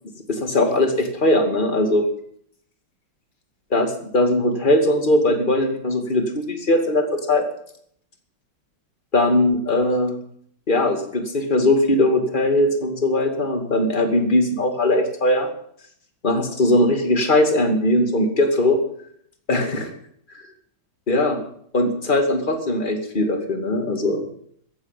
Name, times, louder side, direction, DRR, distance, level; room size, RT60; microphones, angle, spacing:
voice 1, 0.3-2.1 3.7-7.5 9.1-10.2 10.7-15.5 16.2-18.8 19.5-19.9 21.1-21.4 21.7-24.2, left 1 dB, 25° left, 5 dB, 2.4 m, -20 dB
14.5 x 10.5 x 9.1 m, 0.66 s
omnidirectional pair, 2.2 m